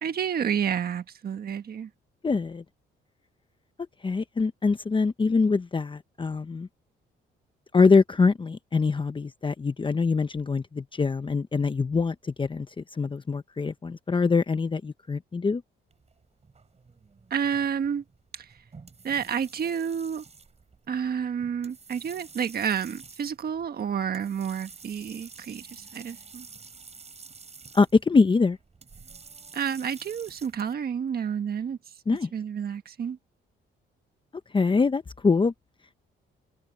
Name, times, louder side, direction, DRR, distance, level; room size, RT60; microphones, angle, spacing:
voice 1, 0.0-1.9 17.3-18.0 18.3-18.5 19.0-20.2 20.9-26.5 29.5-31.8 32.3-33.2, right 7 dB, 50° right, 1.5 m, -30 dB
voice 2, 2.2-2.6 4.0-6.7 7.7-15.6 27.7-28.6 32.1-32.3 34.5-35.5, left 4 dB, 25° left, 0.9 m, -24 dB
sound 1, 15.9-30.7, right 5 dB, 35° right, 4.9 m, -49 dB
cardioid pair, 90°, 20 cm